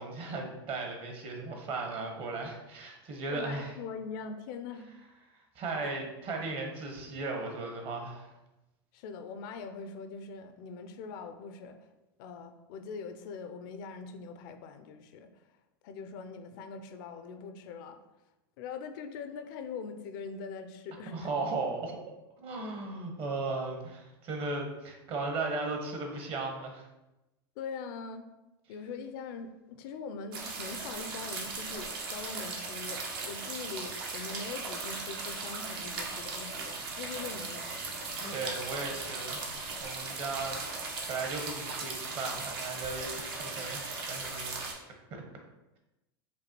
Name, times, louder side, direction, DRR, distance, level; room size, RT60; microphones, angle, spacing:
voice 1, 0.0-3.7 5.5-8.3 21.1-26.9 38.2-39.4 39.8-44.8 45.1-45.2, right 3 dB, 45° right, 2 dB, 1.0 m, -36 dB
voice 2, 3.3-4.9 5.8-5.9 8.9-11.9 12.2-15.3 15.8-18.0 18.6-21.3 27.6-28.3 28.7-37.7, left 5 dB, 60° left, 8 dB, 0.4 m, -42 dB
sound 1, 30.3-44.7, right 3 dB, 75° right, 0.9 m, -38 dB
5.1 x 2.3 x 3.0 m, 0.99 s
hypercardioid pair, 100°, 12 cm